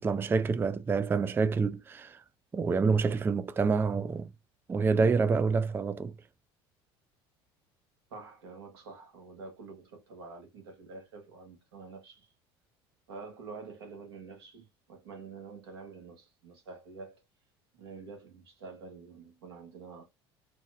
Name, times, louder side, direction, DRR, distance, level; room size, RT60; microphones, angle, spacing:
voice 1, 0.0-2.2 2.5-4.3 4.7-6.1, right 4 dB, 15° right, 0.3 m, -27 dB
voice 2, 8.1-12.3 13.1-17.2 17.7-20.1, right 4 dB, 90° right, 1.2 m, -47 dB
4.1 x 2.1 x 2.4 m
hypercardioid pair, 75°, 13 cm